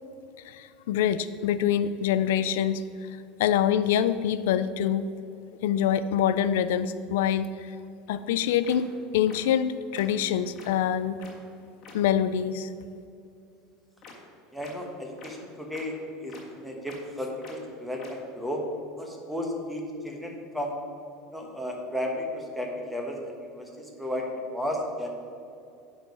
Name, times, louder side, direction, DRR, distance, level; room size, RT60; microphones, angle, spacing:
voice 1, 0.4-2.8 3.4-5.1 5.6-7.5 8.1-11.2 11.9-12.7, left 9 dB, 90° left, 13 dB, 0.4 m, -25 dB
sound 1, 8.1-8.2 8.6-8.8 9.3-9.4 9.9-10.0 10.6-10.7 11.2-11.3 11.8-11.9 14.0-14.1 14.6-14.7 15.2-15.3 15.7-15.8 16.3-16.4 16.9-17.0 17.4-17.5 18.0-18.1, left 6 dB, 30° left, 1.6 m, -47 dB
voice 2, 14.5-15.9 16.2-18.6 19.0-20.7 21.3-25.1, left 1 dB, ahead, 0 dB, 1.1 m, -34 dB
9.8 x 4.8 x 5.3 m, 2.6 s
supercardioid pair, 155°, 0 cm